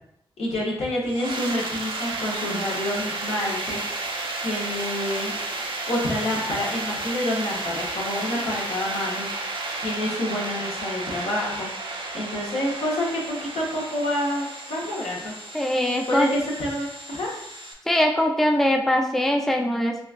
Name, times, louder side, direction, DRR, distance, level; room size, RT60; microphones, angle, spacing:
voice 1, 0.4-3.8 4.1-5.3 5.9-9.3 9.8-15.4 16.1-17.3, left 1 dB, 85° left, -4 dB, 1.0 m, -28 dB
sound 1, 1.1-17.7, right 2 dB, 55° right, 0.6 m, -32 dB
voice 2, 15.5-16.3 17.9-20.0, left 1 dB, 5° left, 1 dB, 0.4 m, -22 dB
3.9 x 2.4 x 2.4 m, 0.77 s
cardioid pair, 50°, 10 cm